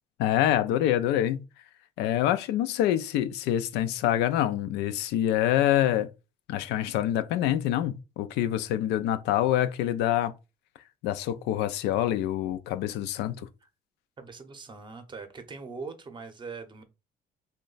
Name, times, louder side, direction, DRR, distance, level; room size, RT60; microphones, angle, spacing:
voice 1, 0.2-1.5 2.0-6.1 6.5-10.3 11.0-13.5, left 12 dB, 90° left, 0.4 m, -26 dB
voice 2, 14.2-16.8, right 4 dB, 30° right, 0.6 m, -41 dB
3.1 x 2.2 x 3.8 m
cardioid pair, 110°, 17 cm